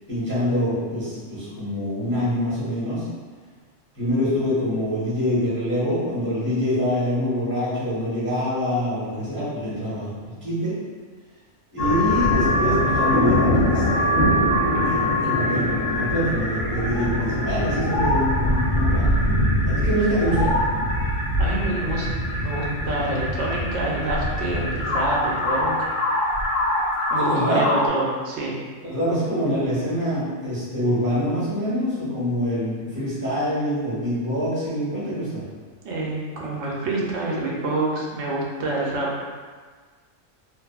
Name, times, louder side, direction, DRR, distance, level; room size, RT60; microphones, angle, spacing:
voice 1, 0.1-3.0 3.9-10.8 11.7-14.3 14.9-19.1 19.6-20.5 27.1-27.6 28.8-35.4, equal, 10° right, -12 dB, 1.1 m, -25 dB
sound 1, 11.8-27.9, left 1 dB, 75° left, 1.0 m, -23 dB
voice 2, 21.4-22.1 22.4-25.7 27.1-28.6 35.8-39.2, right 2 dB, 70° right, -4 dB, 0.9 m, -27 dB
2.6 x 2.5 x 2.3 m, 1.5 s
omnidirectional pair, 1.3 m